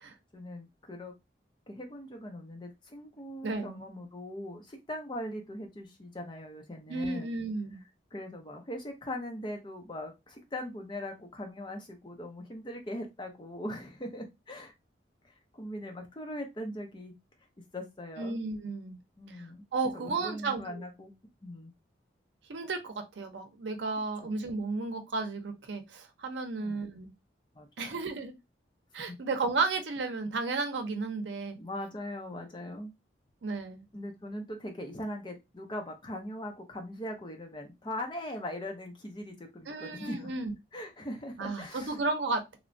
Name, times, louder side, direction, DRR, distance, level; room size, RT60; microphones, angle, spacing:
voice 1, 0.3-1.1 1.7-7.4 8.1-14.7 15.2-17.1 17.7-18.4 19.2-19.6 19.9-21.1 21.4-21.7 24.2-24.3 26.6-26.8 27.5-28.0 29.1-29.2 31.6-32.9 33.9-40.3 40.7-42.0, left 1 dB, 25° left, 0.5 m, -40 dB
voice 2, 3.4-3.8 6.9-7.8 18.2-19.0 19.7-20.8 22.5-27.1 27.8-28.3 28.9-31.6 33.4-33.8 39.7-40.5 41.4-42.6, right 3 dB, 90° right, 0.6 m, -33 dB
3.0 x 2.1 x 2.5 m
head